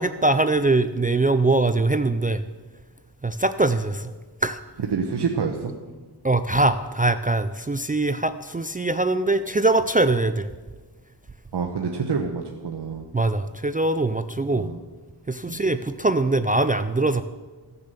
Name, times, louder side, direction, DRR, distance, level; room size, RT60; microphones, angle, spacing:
voice 1, 0.0-2.4 3.2-4.1 4.4-4.6 6.2-10.5 13.1-14.7 15.3-17.2, right 2 dB, 20° right, 10 dB, 0.4 m, -22 dB
voice 2, 4.8-5.7 11.5-13.0 14.5-14.8 15.5-15.6, right 5 dB, 70° right, 3 dB, 1.0 m, -27 dB
15.5 x 6.9 x 6.7 m, 1.3 s
wide cardioid pair, 100°, 42 cm